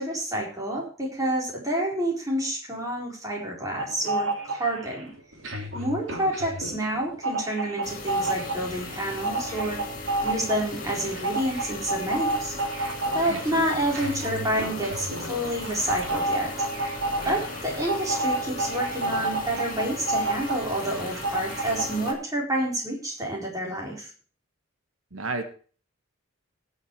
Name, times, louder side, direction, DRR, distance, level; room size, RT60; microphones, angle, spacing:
voice 1, 0.0-5.1 5.7-12.6 13.1-16.5 17.2-24.1, right 1 dB, 15° right, -2 dB, 4.2 m, -29 dB
sound 1, 3.8-5.0 5.3-22.1, right 2 dB, 60° right, 3.2 m, -30 dB
sound 2, 7.8-22.1, left 3 dB, 40° left, 2.2 m, -38 dB
voice 2, 13.3-13.6 25.1-25.4, right 3 dB, 80° right, 6 dB, 1.5 m, -32 dB
19.5 x 6.6 x 4.7 m, 0.41 s
head